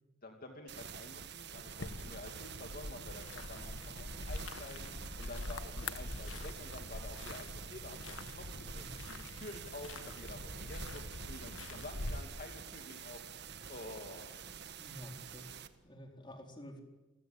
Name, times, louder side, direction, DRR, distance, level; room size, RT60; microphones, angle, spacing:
voice 1, 0.2-11.0 11.3-13.2 13.7-14.4, left 2 dB, 45° left, 4 dB, 2.5 m, -50 dB
sound 1, 0.7-15.7, right 7 dB, 55° right, 1.6 m, -48 dB
sound 2, 1.8-12.2, left 2 dB, 70° left, 1.8 m, -44 dB
voice 2, 8.5-9.0 14.8-16.8, equal, 20° left, 4 dB, 4.2 m, -51 dB
30.0 x 23.0 x 8.7 m, 1.1 s
head